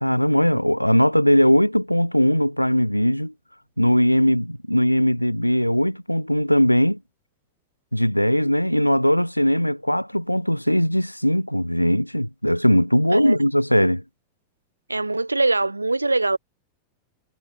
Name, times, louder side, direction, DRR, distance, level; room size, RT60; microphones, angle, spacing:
voice 1, 0.0-3.3 3.8-7.0 7.9-14.0, equal, 90° left, 0.4 m, -19 dB
voice 2, 14.9-16.4, right 2 dB, 85° right, 0.8 m, -22 dB
figure-of-eight pair, 90°, 0 cm